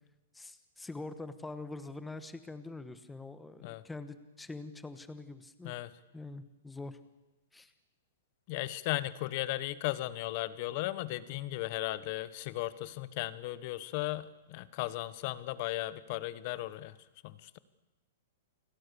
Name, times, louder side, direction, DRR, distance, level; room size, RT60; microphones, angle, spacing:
voice 1, 0.3-5.7 6.1-7.0 7.5-7.7, left 3 dB, 5° left, 12 dB, 1.3 m, -44 dB
voice 2, 8.5-16.9 17.2-17.6, left 16 dB, 40° left, 17 dB, 1.1 m, -36 dB
29.0 x 21.0 x 7.0 m, 1.1 s
hypercardioid pair, 165°, 0 cm